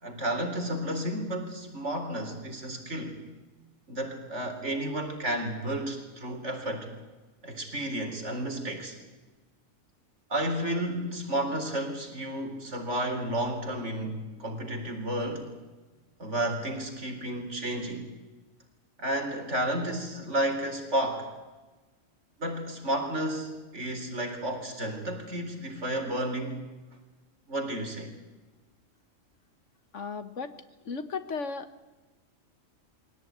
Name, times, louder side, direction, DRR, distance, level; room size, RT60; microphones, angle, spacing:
voice 1, 0.0-3.2 3.9-6.9 7.4-9.0 10.3-15.5 16.2-18.0 19.0-21.3 22.4-26.6 27.5-28.1, right 1 dB, 60° right, 3 dB, 4.3 m, -32 dB
voice 2, 29.9-31.8, left 5 dB, 65° left, 11 dB, 1.5 m, -36 dB
23.0 x 17.5 x 9.3 m, 1.2 s
omnidirectional pair, 1.4 m